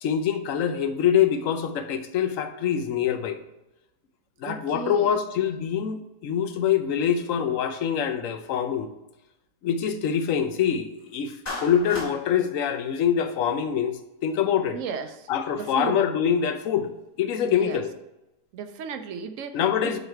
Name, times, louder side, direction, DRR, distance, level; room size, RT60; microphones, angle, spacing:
voice 1, 0.0-3.4 4.4-8.9 9.6-14.8 15.3-16.9 17.2-17.9 19.5-20.0, left 8 dB, 60° left, 8 dB, 0.9 m, -25 dB
voice 2, 4.4-5.2 14.7-15.3 15.5-16.1 17.4-17.8 18.5-19.9, right 6 dB, 65° right, 7 dB, 0.8 m, -35 dB
Clapping, 11.5-12.1, left 2 dB, 25° left, 1.9 m, -34 dB
8.0 x 4.0 x 4.5 m, 0.96 s
omnidirectional pair, 1.8 m